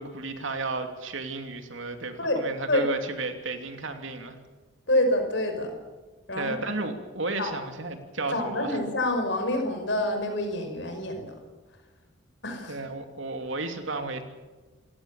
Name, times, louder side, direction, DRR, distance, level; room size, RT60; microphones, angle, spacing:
voice 1, 0.0-4.4 6.4-8.8 12.7-14.2, right 3 dB, 70° right, 6 dB, 2.9 m, -33 dB
voice 2, 2.2-2.9 4.9-5.7 6.3-6.6 7.4-7.5 8.3-11.4 12.4-12.8, left 1 dB, 60° left, 5 dB, 5.4 m, -27 dB
28.0 x 17.0 x 7.1 m, 1.3 s
head